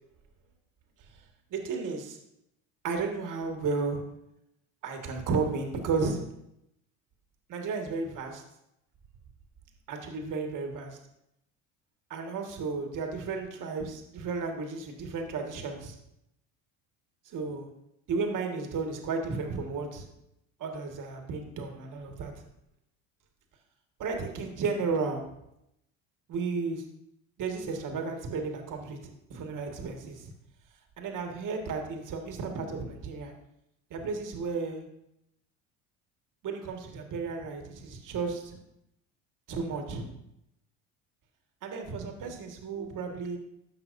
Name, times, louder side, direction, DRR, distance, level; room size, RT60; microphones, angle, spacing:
voice 1, 1.5-2.2 2.8-4.0 4.8-6.2 7.5-8.4 9.9-11.0 12.1-15.9 17.2-17.7 18.1-20.1 20.6-22.3 24.0-25.2 26.3-26.8 27.4-30.3 31.0-33.3 33.9-34.9 36.4-38.6 39.5-40.0 41.6-43.4, right 4 dB, 45° right, 3 dB, 1.7 m, -33 dB
13.5 x 5.6 x 2.6 m, 0.80 s
hypercardioid pair, 75°, 42 cm